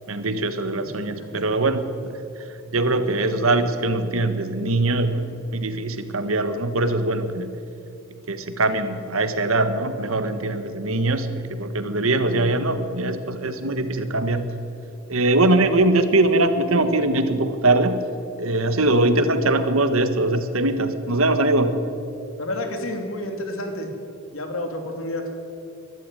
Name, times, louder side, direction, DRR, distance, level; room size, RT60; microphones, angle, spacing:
voice 1, 0.1-2.2 2.7-7.5 8.3-14.5 15.1-18.1 18.4-21.7, right 2 dB, 75° right, 9 dB, 1.6 m, -22 dB
voice 2, 22.4-23.9 24.3-25.4, left 1 dB, 70° left, 4 dB, 2.8 m, -30 dB
22.0 x 13.0 x 9.2 m, 2.6 s
head